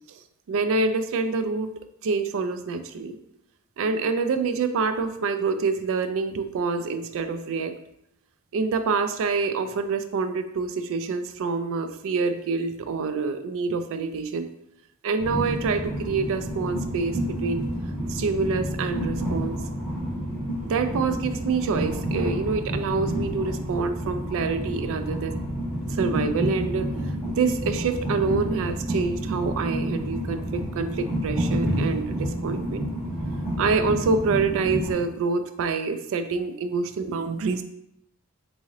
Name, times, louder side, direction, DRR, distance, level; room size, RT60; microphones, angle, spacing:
voice 1, 0.5-1.7 2.0-3.2 3.8-7.7 8.5-14.5 15.0-17.7 18.1-19.6 20.7-25.3 25.9-26.9 27.3-32.8 33.6-37.6, right 4 dB, 65° right, 9 dB, 0.3 m, -26 dB
Train, 15.2-34.9, equal, ahead, 1.2 m, -29 dB
3.6 x 2.7 x 3.1 m, 0.78 s
head